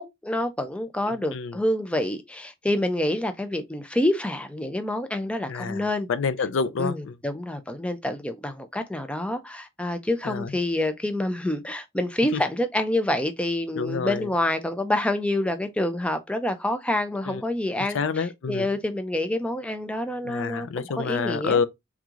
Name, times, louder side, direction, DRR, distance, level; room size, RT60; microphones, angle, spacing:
voice 1, 0.0-6.1 6.8-20.7 21.0-21.6, left 1 dB, 5° left, 0.5 m, -27 dB
voice 2, 5.5-7.1 10.2-10.5 12.3-12.4 13.8-14.3 17.3-17.4 17.8-18.7 20.2-21.7, left 5 dB, 65° left, 0.4 m, -28 dB
3.5 x 3.1 x 3.7 m
head